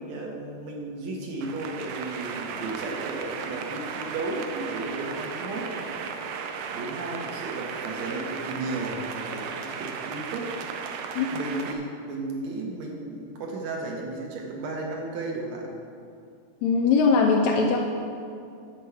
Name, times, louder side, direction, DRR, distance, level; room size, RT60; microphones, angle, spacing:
voice 1, 0.0-6.1 6.7-10.5 11.3-15.8, right 2 dB, 65° right, 0 dB, 2.0 m, -34 dB
sound 1, 1.4-11.7, right 6 dB, 85° right, 1.6 m, -35 dB
voice 2, 16.6-17.8, left 4 dB, 80° left, 1 dB, 1.7 m, -20 dB
10.5 x 4.5 x 6.9 m, 2.5 s
omnidirectional pair, 3.8 m